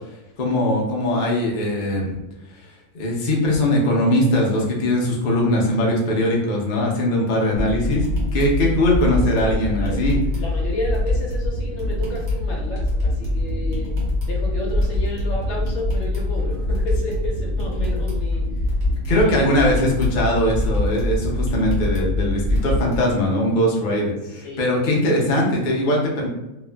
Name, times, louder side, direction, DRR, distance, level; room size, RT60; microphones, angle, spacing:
voice 1, 0.4-2.1 2.9-8.1 8.3-10.2 19.0-26.3, left 1 dB, 85° left, -2 dB, 0.4 m, -20 dB
voice 2, 7.4-7.8 9.4-9.5 9.9-10.0 10.4-14.0 14.2-18.7 19.1-19.6 24.2-24.7, left 1 dB, 60° left, -1 dB, 0.8 m, -32 dB
sound 1, 7.6-23.0, left 1 dB, 50° right, 1.1 m, -24 dB
2.8 x 2.4 x 2.2 m, 0.99 s
omnidirectional pair, 1.6 m